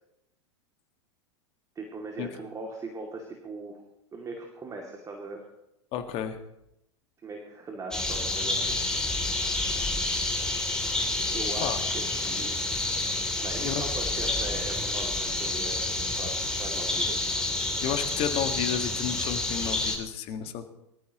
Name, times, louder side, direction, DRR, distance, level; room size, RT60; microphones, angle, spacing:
voice 1, 1.8-3.8 4.1-5.4 7.2-8.8 11.3-12.6 13.4-16.3 16.6-17.3, right 3 dB, 25° right, 1 dB, 2.5 m, -39 dB
voice 2, 5.9-6.4 11.6-11.8 13.6-13.8 17.8-20.7, left 9 dB, 45° left, 7 dB, 1.7 m, -32 dB
sound 1, 7.9-20.0, left 2 dB, 5° left, 3.1 m, -29 dB
24.0 x 14.0 x 3.0 m, 0.84 s
figure-of-eight pair, 90°, 15 cm